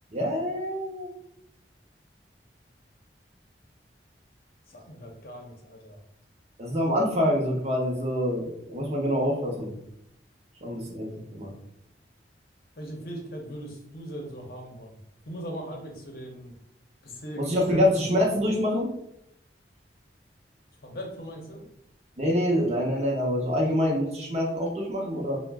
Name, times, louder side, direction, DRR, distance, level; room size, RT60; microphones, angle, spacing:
voice 1, 0.1-1.1 6.6-9.7 10.6-11.5 17.4-18.9 22.2-25.4, equal, 35° right, -1 dB, 0.6 m, -26 dB
voice 2, 4.7-6.0 12.8-15.0 15.3-16.5 17.0-17.8 20.8-21.6, equal, 55° left, 0 dB, 0.7 m, -39 dB
2.4 x 2.1 x 3.4 m, 0.78 s
head